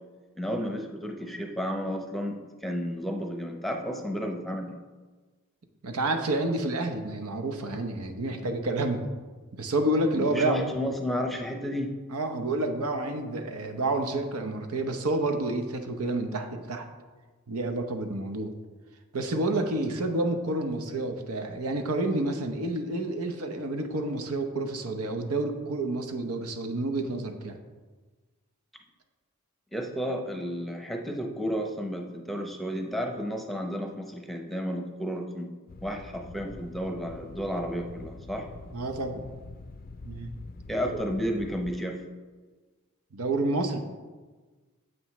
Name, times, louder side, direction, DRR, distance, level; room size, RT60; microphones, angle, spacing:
voice 1, 0.4-4.8 10.1-11.9 29.7-35.5 35.8-38.5 40.7-42.0, equal, ahead, 2 dB, 0.7 m, -32 dB
voice 2, 5.8-9.1 9.5-10.6 12.1-16.9 17.5-18.5 19.1-27.6 38.7-39.3 40.0-40.3 43.1-43.8, right 2 dB, 85° right, 5 dB, 0.9 m, -29 dB
sound 1, 35.7-41.7, left 3 dB, 40° left, 0.4 m, -45 dB
9.3 x 7.8 x 3.1 m, 1.3 s
head